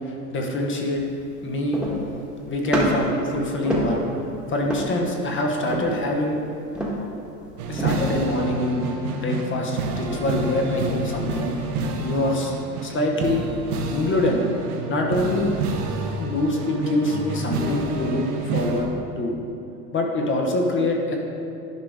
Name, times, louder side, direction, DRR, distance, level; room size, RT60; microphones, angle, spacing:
voice 1, 0.1-1.0 1.4-1.8 2.5-4.0 4.5-6.4 7.7-8.8 9.1-11.5 12.0-12.5 12.8-13.4 13.9-14.4 14.9-15.6 16.2-18.9 19.2-19.3 19.9-21.2, left 1 dB, 25° left, 1 dB, 1.1 m, -24 dB
sound 1, 1.0-1.1 1.7-2.2 2.6-3.2 3.6-4.3 4.6-5.1 5.7-6.1 6.7-7.2 7.8-8.2, equal, ahead, 1.5 m, -26 dB
sound 2, 7.6-18.8, right 3 dB, 65° right, 1.2 m, -29 dB
10.5 x 5.0 x 3.6 m, 2.7 s
hypercardioid pair, 95°, 48 cm